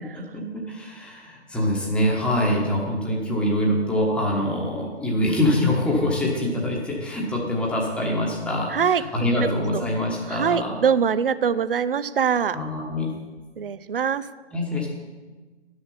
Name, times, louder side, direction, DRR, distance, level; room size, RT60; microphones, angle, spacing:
voice 1, 0.1-10.8 12.5-13.1 14.5-14.9, left 1 dB, 5° left, -2 dB, 1.2 m, -24 dB
voice 2, 8.7-9.0 9.4-9.8 10.3-12.6 13.6-14.3, right 7 dB, 55° right, 15 dB, 0.5 m, -23 dB
12.0 x 6.4 x 5.6 m, 1.3 s
figure-of-eight pair, 130°, 34 cm